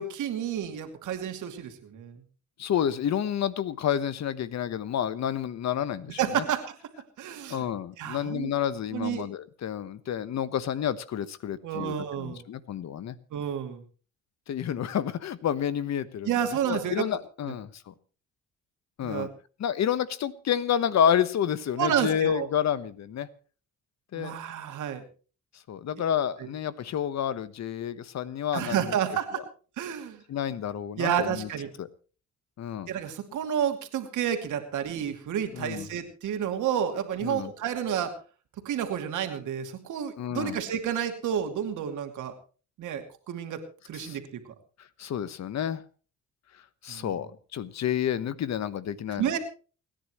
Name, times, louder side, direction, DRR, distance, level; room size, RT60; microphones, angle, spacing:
voice 1, 0.0-2.2 6.2-6.8 7.2-7.7 8.0-8.5 8.9-9.3 11.6-12.4 13.3-13.8 16.2-17.0 17.5-17.6 19.0-19.3 21.8-22.5 24.1-25.0 26.4-26.5 28.5-29.4 29.8-30.2 31.0-31.7 32.9-38.1 38.6-42.3 42.8-44.4 46.9-47.1 49.2-49.4, right 9 dB, 80° right, 6 dB, 2.6 m, -30 dB
voice 2, 2.6-6.4 7.5-13.1 14.5-16.3 16.7-17.9 19.0-19.3 19.6-23.3 24.1-24.4 25.7-28.9 30.3-31.5 31.8-31.9 32.6-32.9 35.5-35.9 37.2-37.5 40.2-40.6 44.0-44.2 45.0-45.8 46.8-49.4, left 9 dB, 60° left, 15 dB, 1.2 m, -29 dB
29.0 x 10.5 x 3.1 m, 0.37 s
cardioid pair, 90°, 30 cm